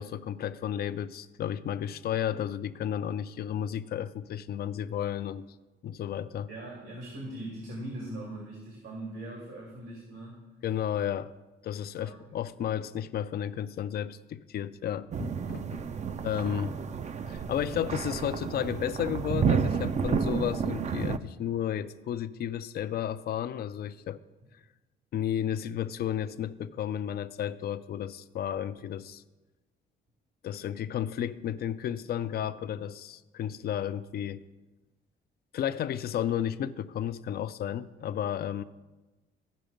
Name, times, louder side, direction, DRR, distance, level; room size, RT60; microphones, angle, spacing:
voice 1, 0.0-5.5 5.8-6.5 10.6-11.3 11.6-15.6 16.2-16.8 17.3-24.2 25.1-29.2 30.4-34.4 35.5-38.6, left 10 dB, 50° left, 0.4 m, -33 dB
voice 2, 6.5-10.5 12.0-12.5 15.9-16.7 38.0-38.2, right 1 dB, 85° right, 2.5 m, -42 dB
sound 1, 15.1-21.2, right 6 dB, 35° right, 0.4 m, -30 dB
14.0 x 5.1 x 5.1 m
cardioid pair, 90°, 20 cm